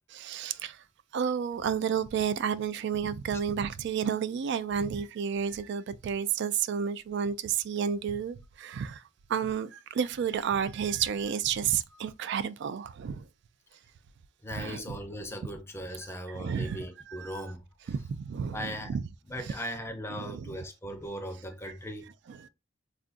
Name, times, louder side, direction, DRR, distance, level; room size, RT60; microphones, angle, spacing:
voice 1, 0.1-0.8 1.1-9.0 9.3-13.3 14.5-15.0 16.3-16.8 17.1-17.3 17.9-19.0 20.1-20.4, right 7 dB, 60° right, 0.3 m, -31 dB
voice 2, 14.4-17.9 18.5-19.0 19.3-22.1, equal, 10° left, 0.6 m, -39 dB
4.4 x 2.5 x 2.4 m
head